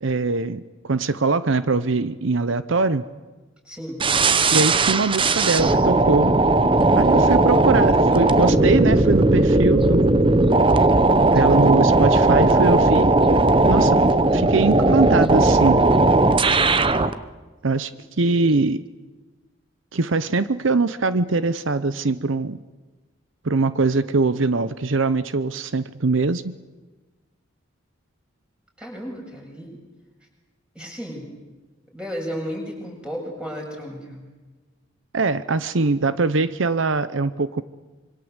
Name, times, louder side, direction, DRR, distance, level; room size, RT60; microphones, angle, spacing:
voice 1, 0.0-3.1 4.5-6.3 7.0-10.3 11.3-13.1 13.7-14.0 14.3-15.8 17.6-17.9 18.2-18.8 19.9-22.6 23.4-26.5 35.1-37.6, right 3 dB, 70° right, 14 dB, 0.8 m, -22 dB
voice 2, 3.6-4.0 28.8-29.8 30.7-31.2 31.9-34.2, equal, 5° right, -1 dB, 7.2 m, -33 dB
sound 1, 4.0-17.1, right 2 dB, 25° right, 0.9 m, -17 dB
26.0 x 24.5 x 8.1 m, 1.3 s
head